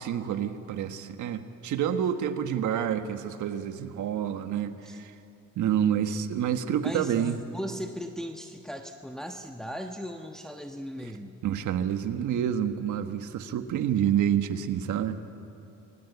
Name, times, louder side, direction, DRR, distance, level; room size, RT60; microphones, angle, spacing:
voice 1, 0.0-5.1 5.6-7.4 11.4-15.2, right 9 dB, 80° right, 8 dB, 1.5 m, -28 dB
voice 2, 6.8-11.4, equal, ahead, 3 dB, 1.3 m, -38 dB
27.5 x 22.5 x 8.2 m, 2.8 s
cardioid pair, 90°, 30 cm